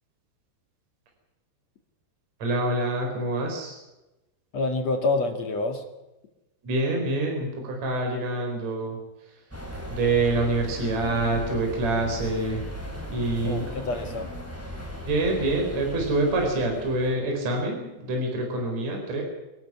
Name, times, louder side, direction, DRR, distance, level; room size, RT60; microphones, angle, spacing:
voice 1, 2.4-3.8 6.6-9.4 9.9-12.7 13.1-13.8 15.1-19.2, right 2 dB, 40° right, 1 dB, 5.3 m, -26 dB
voice 2, 4.5-5.8 13.4-14.3, left 3 dB, 45° left, 5 dB, 2.6 m, -27 dB
sound 1, 9.5-17.2, equal, 5° right, 3.9 m, -37 dB
25.5 x 13.5 x 9.8 m, 1.0 s
omnidirectional pair, 5.3 m